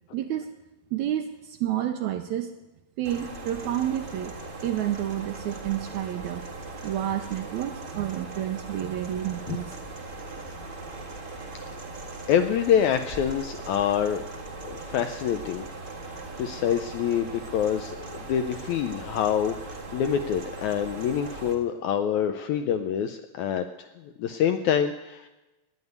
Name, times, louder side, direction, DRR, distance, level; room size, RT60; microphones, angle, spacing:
voice 1, 0.1-0.5 0.9-2.5 3.0-4.3 4.6-6.4 6.8-9.8, right 11 dB, 85° right, 6 dB, 1.7 m, -30 dB
sound 1, 3.0-21.5, right 3 dB, 60° right, 0.5 m, -39 dB
voice 2, 12.3-14.2 14.6-15.7 16.4-23.6 24.2-25.3, left 9 dB, 80° left, 8 dB, 1.7 m, -26 dB
10.5 x 9.8 x 9.4 m, 1.0 s
omnidirectional pair, 4.0 m